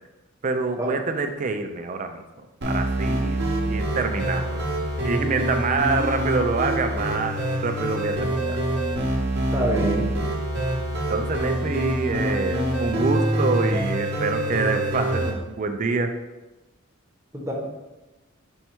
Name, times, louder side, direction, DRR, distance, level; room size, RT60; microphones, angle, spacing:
voice 1, 0.4-4.7 5.0-7.3 7.6-8.6 11.1-16.1, right 4 dB, 40° right, 6 dB, 0.4 m, -26 dB
sound 1, 2.6-15.3, right 1 dB, 55° right, 0.8 m, -25 dB
voice 2, 9.5-10.2 17.3-17.5, right 1 dB, 15° right, -2 dB, 0.8 m, -25 dB
5.4 x 2.2 x 4.4 m, 1.1 s
head